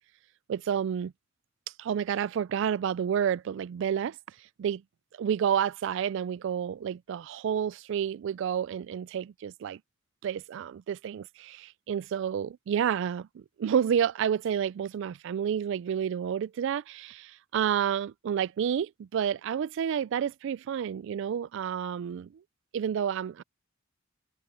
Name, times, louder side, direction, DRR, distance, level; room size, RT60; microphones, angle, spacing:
voice 1, 0.5-1.1 1.8-4.2 4.6-4.8 5.2-9.8 10.2-22.4 22.7-23.4, right 8 dB, 65° right, 0.3 m, -30 dB
head